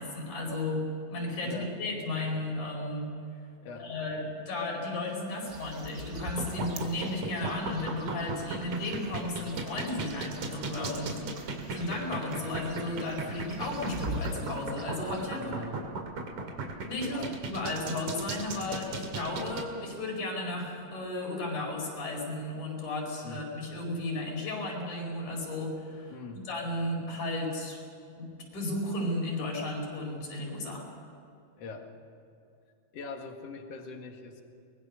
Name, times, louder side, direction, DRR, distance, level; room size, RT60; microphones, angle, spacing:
voice 1, 0.0-3.1 3.8-15.5 16.9-17.2 17.5-26.2 26.5-27.8 28.2-30.9, left 2 dB, 75° left, 0 dB, 6.3 m, -34 dB
sound 1, 5.3-15.3, right 2 dB, 45° right, 1.2 m, -44 dB
sound 2, 6.2-19.6, right 3 dB, 70° right, 3.6 m, -36 dB
voice 2, 15.4-15.8 17.0-17.3 23.2-23.4 26.1-26.5 31.6-31.9 32.9-34.4, left 3 dB, 55° left, 4 dB, 2.7 m, -42 dB
24.0 x 20.5 x 6.5 m, 2.6 s
omnidirectional pair, 3.5 m